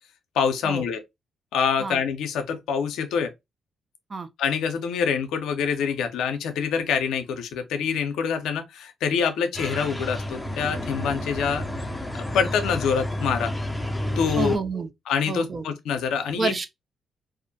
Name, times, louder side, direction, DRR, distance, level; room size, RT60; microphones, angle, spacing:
voice 1, 0.4-1.0 1.5-3.3 4.4-11.7 12.3-13.5 14.2-14.6 15.1-16.5, left 6 dB, 85° left, 0.4 m, -25 dB
sound 1, 9.5-14.6, left 1 dB, 15° left, 0.5 m, -30 dB
voice 2, 14.4-14.9 15.3-15.7 16.4-16.7, right 4 dB, 45° right, 0.4 m, -28 dB
2.4 x 2.1 x 2.6 m
supercardioid pair, 65°, 0 cm